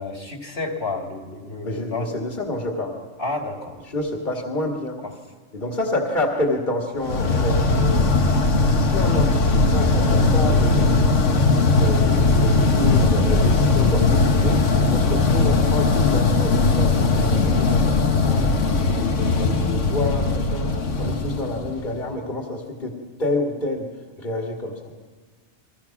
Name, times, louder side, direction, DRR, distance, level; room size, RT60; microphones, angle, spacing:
voice 1, 0.0-2.1 3.2-3.8 5.0-5.1, left 3 dB, 60° left, 2 dB, 3.0 m, -30 dB
voice 2, 1.6-3.0 3.9-5.0 5.5-8.1 8.7-11.2 11.7-23.9 24.2-24.9, left 1 dB, 40° left, 1 dB, 2.2 m, -28 dB
sound 1, 7.0-22.1, left 3 dB, 90° left, 1.7 m, -19 dB
29.5 x 23.0 x 6.0 m, 1.4 s
omnidirectional pair, 1.2 m